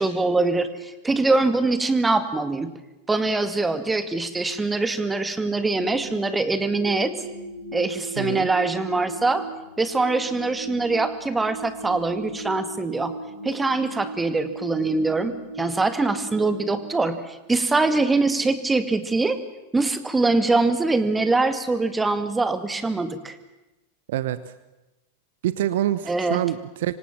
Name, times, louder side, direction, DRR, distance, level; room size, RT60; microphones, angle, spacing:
voice 1, 0.0-2.7 3.1-7.1 7.7-9.4 9.8-13.1 13.4-19.4 19.7-23.4 26.1-26.4, right 3 dB, 10° right, 11 dB, 2.1 m, -23 dB
sound 1, 5.6-17.7, right 3 dB, 75° right, 3.4 m, -37 dB
voice 2, 8.2-8.5 24.1-24.5 25.4-27.0, right 13 dB, 55° right, 15 dB, 1.0 m, -26 dB
25.5 x 25.5 x 7.6 m, 1.0 s
figure-of-eight pair, 90°, 0 cm